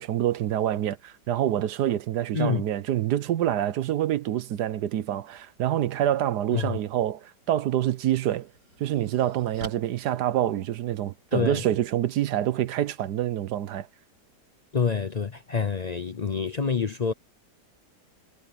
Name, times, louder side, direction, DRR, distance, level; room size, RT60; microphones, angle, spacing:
voice 1, 0.0-8.5 8.8-13.9, right 11 dB, 75° right, 1.3 m, -26 dB
sound 1, 8.1-11.1, right 2 dB, 55° right, 8.3 m, -46 dB
voice 2, 11.3-11.6 14.7-17.1, left 5 dB, 55° left, 0.4 m, -27 dB
omnidirectional pair, 1.8 m